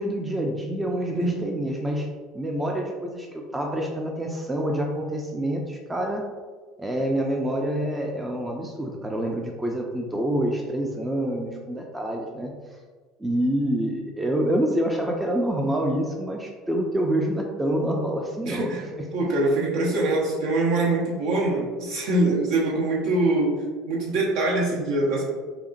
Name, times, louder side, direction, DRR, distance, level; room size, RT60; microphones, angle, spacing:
voice 1, 0.0-2.1 2.3-6.2 6.8-12.5 13.2-18.7 19.2-19.3, right 1 dB, 15° right, 1 dB, 0.5 m, -27 dB
voice 2, 18.4-18.8 19.1-23.6 23.8-25.2, right 2 dB, 65° right, -4 dB, 1.1 m, -23 dB
5.6 x 2.1 x 2.5 m, 1.4 s
hypercardioid pair, 70°, 0 cm